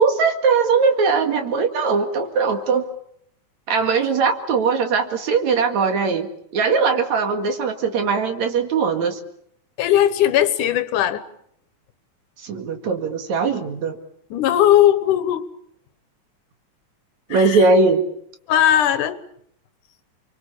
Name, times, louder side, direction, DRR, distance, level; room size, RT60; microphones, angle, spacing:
voice 1, 0.0-2.9 3.7-6.3 6.5-9.2 12.4-14.0 17.3-18.0, right 4 dB, 70° right, 6 dB, 3.3 m, -20 dB
voice 2, 9.8-11.2 14.3-15.5 17.3-17.7 18.5-19.2, left 11 dB, 90° left, 13 dB, 2.8 m, -18 dB
29.5 x 23.0 x 7.2 m, 0.70 s
omnidirectional pair, 3.5 m